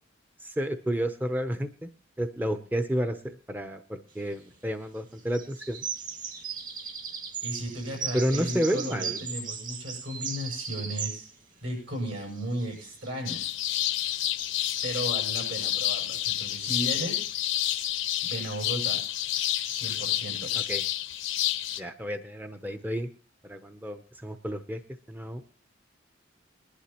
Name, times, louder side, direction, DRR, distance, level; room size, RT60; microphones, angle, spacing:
voice 1, 0.4-1.9 2.2-5.9 8.1-9.2 20.5-20.8 21.8-23.1 23.4-24.8 25.1-25.4, equal, 10° right, 8 dB, 0.7 m, -31 dB
sound 1, 4.1-4.6 5.2-11.4 11.7-18.5, right 6 dB, 45° right, 2.1 m, -39 dB
voice 2, 7.4-11.3 11.6-13.6 14.8-17.3 18.2-19.0 19.7-20.5, right 1 dB, 75° right, 1 dB, 7.4 m, -35 dB
sound 2, 13.3-21.8, left 12 dB, 90° left, 1.0 m, -29 dB
20.5 x 11.5 x 2.9 m, 0.39 s
head